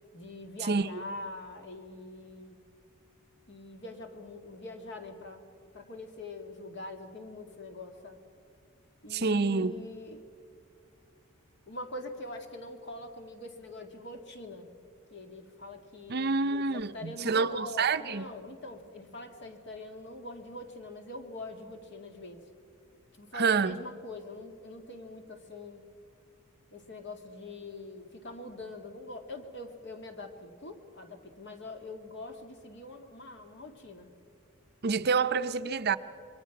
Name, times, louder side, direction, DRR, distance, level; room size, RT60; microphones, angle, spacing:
voice 1, 0.1-2.6 3.5-5.5 5.7-8.2 9.0-10.2 11.7-14.7 15.1-22.4 23.1-25.9 26.7-34.1, left 2 dB, 55° left, 2.1 m, -44 dB
voice 2, 9.1-9.8 16.1-18.3 23.3-23.7 34.8-36.0, right 4 dB, 50° right, 0.6 m, -27 dB
27.0 x 22.5 x 6.0 m
head